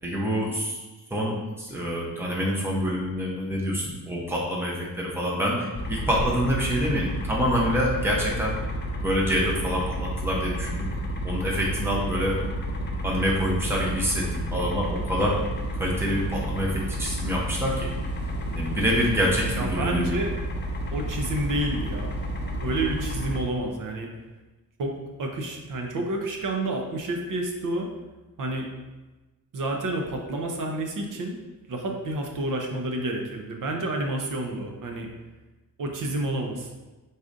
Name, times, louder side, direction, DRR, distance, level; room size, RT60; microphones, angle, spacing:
voice 1, 0.0-0.8 1.1-8.6 9.0-10.9 11.2-12.4 13.0-15.4 15.7-17.9 18.6-20.1, equal, 5° right, -3 dB, 0.7 m, -26 dB
sound 1, 5.7-23.4, equal, 30° left, 0.5 m, -31 dB
voice 2, 19.5-20.3 20.9-22.1 22.6-24.1 24.8-27.9 28.4-28.7 29.5-31.4 31.7-35.1 35.8-36.7, right 1 dB, 60° right, 2 dB, 0.7 m, -29 dB
4.8 x 4.1 x 2.5 m, 1.2 s
wide cardioid pair, 170°, 36 cm